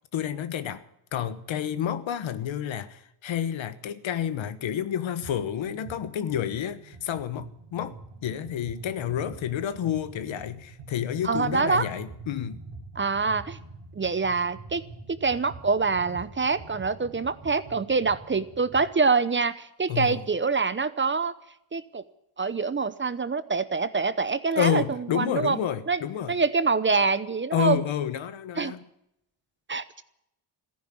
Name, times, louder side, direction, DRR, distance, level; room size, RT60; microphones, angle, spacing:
voice 1, 0.1-0.8 1.1-8.0 8.2-12.6 19.9-20.3 24.6-26.4 27.5-28.8, left 9 dB, 80° left, 1.3 m, -29 dB
sound 1, 5.2-5.4 5.6-18.9, right 3 dB, 85° right, 3.7 m, -45 dB
voice 2, 11.2-11.9 13.0-13.6 14.0-14.8 15.2-21.3 21.7-22.0 22.4-25.6 25.9-26.0 26.3-27.8 28.6-28.7 29.7-30.0, right 4 dB, 25° right, 0.8 m, -25 dB
14.5 x 10.5 x 9.5 m
cardioid pair, 100°, 46 cm